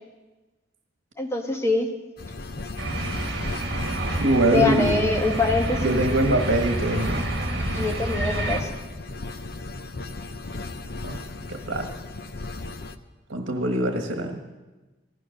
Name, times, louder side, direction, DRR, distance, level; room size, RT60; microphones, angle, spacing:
voice 1, 1.2-1.9 4.5-5.9 7.6-8.7, left 3 dB, 15° left, 2 dB, 1.4 m, -24 dB
sound 1, 2.2-13.0, left 2 dB, 50° left, 0.7 m, -36 dB
sound 2, 2.8-8.6, right 1 dB, 55° right, 1.8 m, -28 dB
voice 2, 4.2-5.0 5.8-7.3 11.0-11.2 11.5-11.9 13.3-14.4, right 1 dB, 75° right, 4 dB, 1.4 m, -23 dB
15.5 x 12.5 x 6.5 m, 1.2 s
head